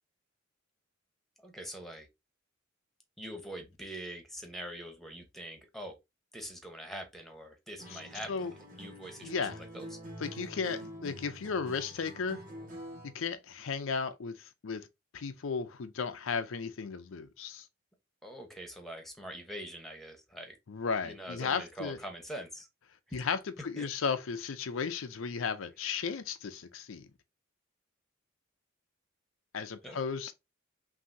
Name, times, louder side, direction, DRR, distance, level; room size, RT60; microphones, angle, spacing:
voice 1, 1.4-2.1 3.2-6.0 6.3-8.5 8.8-9.5 9.7-10.0 18.2-20.5 21.0-22.7 23.1-23.3 23.8-23.9 29.8-30.0, equal, ahead, 1.0 m, -44 dB
Acoustic guitar, 7.8-13.2, equal, 45° right, 1.6 m, -46 dB
voice 2, 9.2-9.6 10.2-12.4 13.0-14.9 15.1-17.6 20.7-22.0 23.1-27.1 29.5-30.3, left 5 dB, 80° left, 0.5 m, -35 dB
5.7 x 2.7 x 2.7 m
head